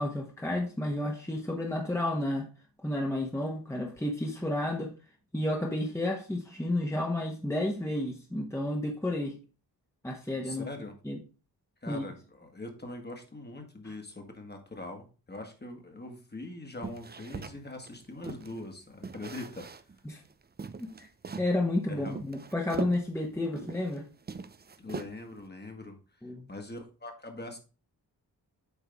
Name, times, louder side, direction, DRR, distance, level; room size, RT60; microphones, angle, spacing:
voice 1, 0.0-2.5 2.8-4.9 5.3-9.4 10.0-10.7 11.0-11.2 11.9-12.0 20.0-20.2 20.8-21.1 21.4-24.0 26.2-26.5, left 1 dB, 5° left, 1.2 m, -31 dB
voice 2, 10.4-10.9 11.8-19.7 21.9-22.2 24.8-26.0 26.5-27.6, left 2 dB, 25° left, 1.6 m, -42 dB
sound 1, 16.8-18.6 19.0-20.0 20.2-20.3 20.6-21.5 22.0-24.0 24.2-25.4, right 4 dB, 25° right, 0.5 m, -40 dB
8.3 x 4.6 x 3.5 m
wide cardioid pair, 85°, 39 cm